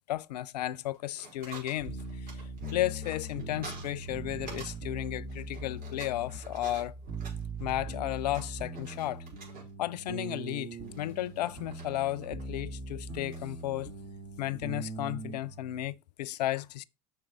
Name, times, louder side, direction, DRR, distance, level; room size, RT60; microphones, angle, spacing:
voice 1, 0.1-2.4 2.7-7.0 7.6-9.3 9.8-13.9 14.4-16.8, left 14 dB, 80° left, 0.4 m, -34 dB
sound 1, 0.9-4.8 5.0-9.8 10.8-12.4 13.3-13.6, right 3 dB, 45° right, 4.5 m, -49 dB
sound 2, 1.8-15.9, right 2 dB, 60° right, 2.6 m, -41 dB
6.2 x 4.7 x 6.0 m
hypercardioid pair, 80°, 21 cm